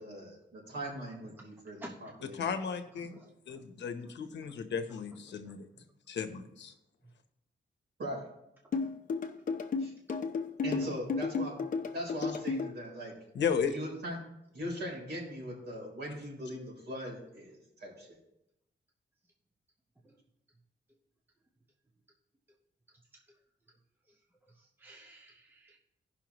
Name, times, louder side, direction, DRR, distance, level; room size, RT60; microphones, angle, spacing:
voice 1, 0.0-2.4 8.0-8.3 9.8-9.9 10.6-11.6 11.9-13.1 13.7-14.2 14.5-18.2, equal, 65° right, -2 dB, 3.9 m, -40 dB
voice 2, 1.8-2.1 3.0-3.6 4.4-4.5 5.4-5.5 20.0-20.2 24.8-25.8, right 1 dB, 10° right, 0 dB, 0.8 m, -51 dB
voice 3, 2.3-5.7 6.1-6.7 13.3-13.7, left 6 dB, 70° left, 7 dB, 1.0 m, -35 dB
sound 1, 8.7-12.7, left 4 dB, 45° left, 0.7 m, -32 dB
16.5 x 5.7 x 3.0 m, 0.82 s
wide cardioid pair, 175°, 19 cm